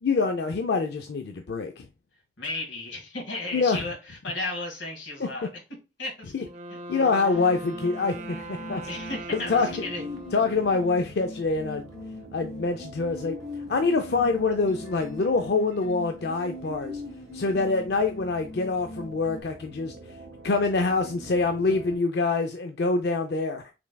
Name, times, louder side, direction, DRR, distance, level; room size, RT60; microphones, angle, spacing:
voice 1, 0.0-1.9 3.5-3.8 5.2-5.3 6.3-6.4 6.9-8.8 9.3-9.7 10.3-11.9 12.3-13.4 13.7-17.0 17.3-19.9 20.4-23.7, left 3 dB, 60° left, 0.4 m, -25 dB
voice 2, 2.4-5.5 6.0-6.3 6.7-6.8 8.8-10.0, left 2 dB, 90° left, 2.0 m, -34 dB
Wind instrument woodwind instrument, 6.3-11.2, right 1 dB, 40° right, 0.6 m, -40 dB
sound 1, 7.3-19.4, left 2 dB, 20° left, 1.2 m, -41 dB
sound 2, 7.3-21.9, right 2 dB, 85° right, 0.8 m, -47 dB
5.9 x 3.3 x 2.2 m
head